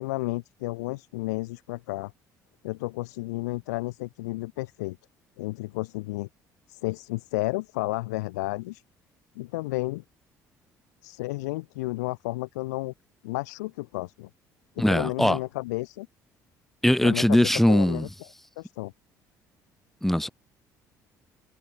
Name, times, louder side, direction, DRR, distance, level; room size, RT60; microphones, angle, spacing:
voice 1, 0.0-2.1 2.6-5.0 5.4-6.3 6.7-8.8 9.4-10.0 11.0-12.9 13.2-14.3 14.8-16.1 17.0-18.1 18.6-18.9, left 21 dB, 75° left, 2.4 m, -32 dB
voice 2, 14.8-15.4 16.8-18.1 20.0-20.3, equal, 5° left, 0.5 m, -21 dB
figure-of-eight pair, 55°, 9 cm